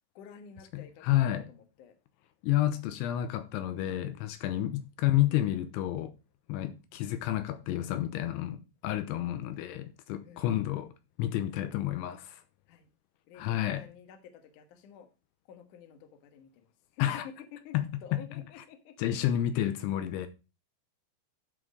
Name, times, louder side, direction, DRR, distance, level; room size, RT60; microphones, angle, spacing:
voice 1, 0.1-1.9 9.2-9.5 10.2-10.6 11.5-11.8 12.7-12.9 13.3-15.1 15.5-17.8 18.0-19.3 19.5-20.3, left 8 dB, 65° left, 2.0 m, -51 dB
voice 2, 0.7-1.5 2.4-6.1 6.5-10.9 11.2-12.4 13.4-13.8 17.0-17.3 17.7-17.9 18.1-18.2 19.0-20.3, left 13 dB, 85° left, 3.1 m, -30 dB
12.5 x 4.4 x 5.0 m
omnidirectional pair, 5.5 m